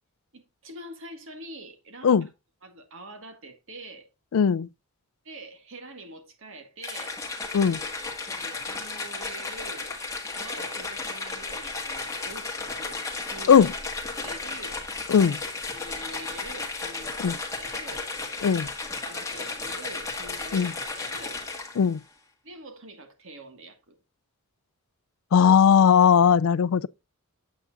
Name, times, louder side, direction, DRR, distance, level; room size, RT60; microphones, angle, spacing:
voice 1, 0.3-2.3 2.6-4.1 5.2-7.2 8.3-9.9 10.3-13.7 14.1-14.8 15.7-18.1 19.0-21.4 22.4-24.0, right 2 dB, 60° right, 1.9 m, -45 dB
voice 2, 4.3-4.7 7.5-7.8 13.5-13.7 15.1-15.4 17.2-17.3 18.4-18.7 20.5-20.7 21.8-22.0 25.3-26.9, left 7 dB, 70° left, 0.4 m, -18 dB
sound 1, 6.8-21.9, left 3 dB, 15° left, 1.6 m, -34 dB
8.8 x 7.8 x 2.5 m
head